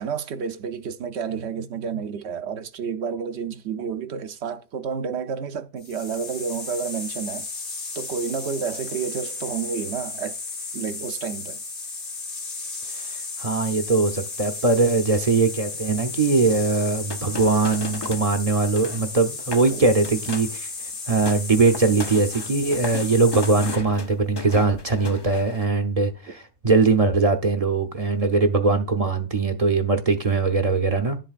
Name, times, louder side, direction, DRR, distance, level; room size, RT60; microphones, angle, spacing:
voice 1, 0.0-7.5 7.9-10.4 10.7-11.6 19.7-19.9, right 6 dB, 65° right, 0.9 m, -30 dB
sound 1, 5.8-23.8, left 4 dB, 70° left, 2.2 m, -34 dB
voice 2, 13.1-20.7 21.1-31.2, right 3 dB, 35° right, 0.7 m, -21 dB
sound 2, 16.4-18.3 18.6-19.1 19.4-19.7 20.0-20.6 20.9-25.6, left 4 dB, 35° left, 0.4 m, -36 dB
11.0 x 7.6 x 2.4 m
omnidirectional pair, 1.3 m